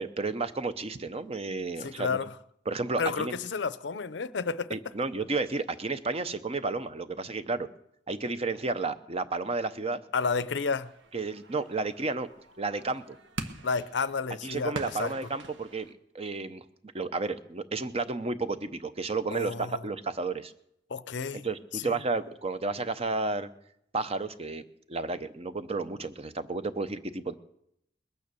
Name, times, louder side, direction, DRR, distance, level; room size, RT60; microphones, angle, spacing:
voice 1, 0.0-2.2 2.7-3.3 4.7-7.7 8.1-10.0 11.1-12.3 12.6-13.2 14.4-15.9 16.1-16.6 16.9-20.5 21.3-23.5 23.9-27.3, right 3 dB, 30° right, 0.7 m, -32 dB
voice 2, 1.8-2.4 3.0-4.8 10.1-10.9 13.6-15.1 19.3-19.8 20.9-21.5 21.7-21.9, left 5 dB, 65° left, 0.6 m, -31 dB
sound 1, 10.8-15.9, right 3 dB, 70° right, 1.2 m, -44 dB
21.0 x 9.2 x 6.9 m
head